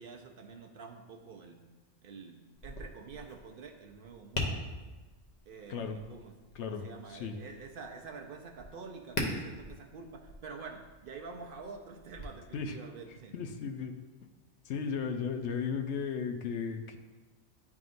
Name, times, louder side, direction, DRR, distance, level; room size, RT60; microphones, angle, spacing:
voice 1, 0.0-1.6 2.0-4.7 5.5-13.3, right 4 dB, 60° right, 3 dB, 0.6 m, -47 dB
Tap, 2.5-12.2, left 2 dB, 40° left, 0.9 m, -42 dB
voice 2, 13.3-13.9 14.7-17.0, left 6 dB, 80° left, 6 dB, 0.9 m, -35 dB
10.5 x 3.6 x 2.5 m, 1.2 s
omnidirectional pair, 1.2 m